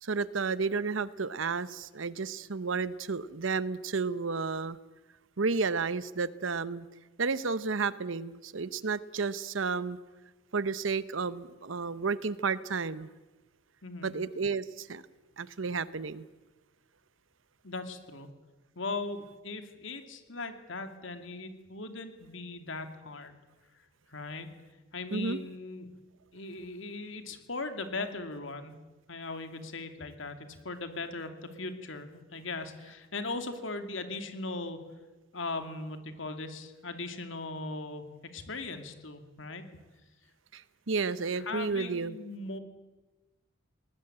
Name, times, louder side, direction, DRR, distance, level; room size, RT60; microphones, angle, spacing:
voice 1, 0.0-4.8 5.4-6.9 7.2-10.0 10.5-13.1 14.0-15.0 15.4-16.3 25.1-25.4 40.5-42.2, right 4 dB, 75° right, 16 dB, 0.9 m, -32 dB
voice 2, 13.8-14.1 17.6-18.3 18.8-23.4 24.1-24.5 24.9-25.9 26.3-28.8 29.1-34.8 35.3-38.0 38.3-39.6 41.5-42.6, left 3 dB, 70° left, 7 dB, 2.6 m, -39 dB
21.0 x 19.5 x 8.8 m, 1.2 s
head